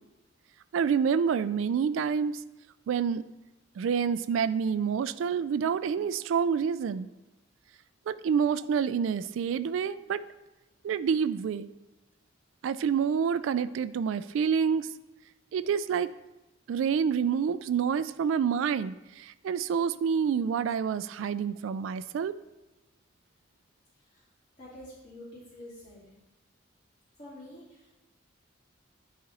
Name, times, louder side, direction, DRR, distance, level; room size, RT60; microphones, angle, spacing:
voice 1, 0.7-2.4 2.9-3.2 3.8-7.1 8.1-10.2 10.8-11.7 12.6-14.9 15.5-16.1 16.7-22.3, right 7 dB, 75° right, 14 dB, 0.3 m, -28 dB
voice 2, 24.6-26.1 27.2-27.9, left 1 dB, 35° left, -12 dB, 2.6 m, -48 dB
10.0 x 4.2 x 4.1 m, 1.0 s
head